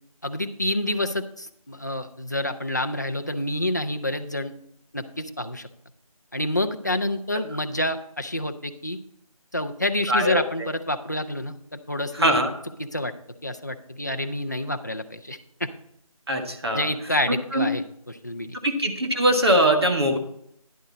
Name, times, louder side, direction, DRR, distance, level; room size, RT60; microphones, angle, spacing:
voice 1, 0.2-4.5 4.9-5.7 6.3-9.0 9.5-12.4 12.9-13.1 13.4-15.7 16.7-17.8 18.2-18.6, left 1 dB, 30° left, 7 dB, 0.6 m, -28 dB
voice 2, 10.1-10.7 12.1-12.5 16.3-16.9 17.5-17.7 18.6-20.2, right 1 dB, 45° right, 3 dB, 1.6 m, -21 dB
10.5 x 7.6 x 4.1 m, 0.72 s
figure-of-eight pair, 175°, 19 cm